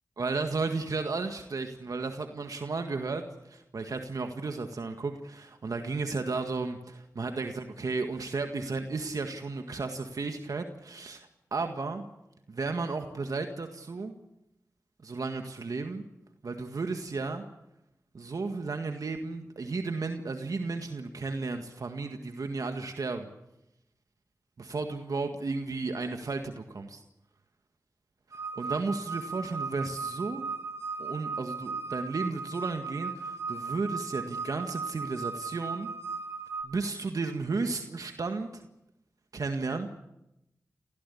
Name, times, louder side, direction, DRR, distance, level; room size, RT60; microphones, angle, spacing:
voice 1, 0.2-3.2 3.5-12.1 12.5-14.2 15.0-16.1 16.4-17.5 18.1-23.3 24.6-27.0 28.6-30.5 31.0-35.9 36.6-38.6 39.3-39.9, right 3 dB, 70° right, 6 dB, 1.8 m, -33 dB
sound 1, 28.3-36.6, right 4 dB, 45° right, 4.6 m, -37 dB
28.0 x 16.0 x 8.5 m, 0.87 s
cardioid pair, 45°, 6 cm